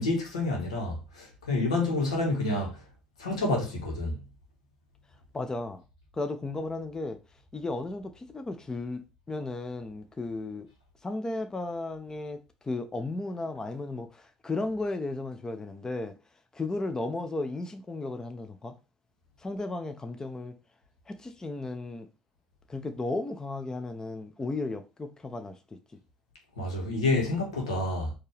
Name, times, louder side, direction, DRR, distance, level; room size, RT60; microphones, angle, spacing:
voice 1, 0.0-2.8 3.2-4.2 26.6-28.1, left 2 dB, 90° left, 1.6 m, -28 dB
voice 2, 5.3-5.8 6.1-7.2 7.5-10.7 11.0-16.1 16.5-18.8 19.4-20.5 21.1-22.1 22.7-25.6, left 2 dB, 20° left, 0.7 m, -34 dB
4.4 x 3.0 x 3.3 m
hypercardioid pair, 65°, 3 cm